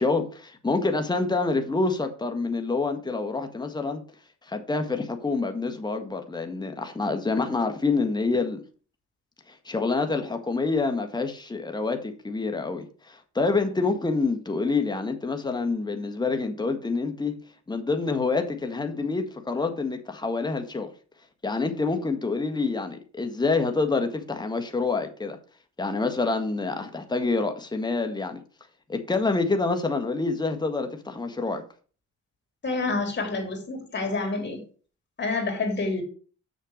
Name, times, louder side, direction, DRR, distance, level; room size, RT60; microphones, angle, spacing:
voice 1, 0.0-4.0 4.5-8.6 9.5-17.3 17.7-20.9 21.4-25.4 25.8-28.4 28.9-31.6, left 3 dB, 15° left, 1.6 m, -27 dB
voice 2, 32.6-34.6 35.2-36.0, left 3 dB, 35° left, 3.5 m, -28 dB
6.7 x 6.6 x 6.5 m
cardioid pair, 90°, 30 cm